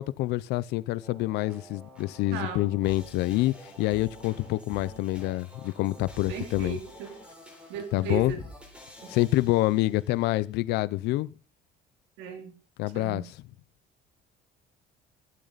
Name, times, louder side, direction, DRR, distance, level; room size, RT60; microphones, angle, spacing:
voice 1, 0.0-6.8 7.9-8.3 9.1-11.3 12.8-13.2, left 17 dB, 65° left, 0.7 m, -27 dB
sound 1, 1.0-10.2, equal, 5° right, 3.8 m, -48 dB
voice 2, 2.3-2.7 6.3-7.2 7.7-8.4 9.0-9.1 12.2-12.5 12.9-13.3, right 6 dB, 85° right, 3.5 m, -36 dB
15.5 x 12.5 x 4.1 m
cardioid pair, 180°, 18 cm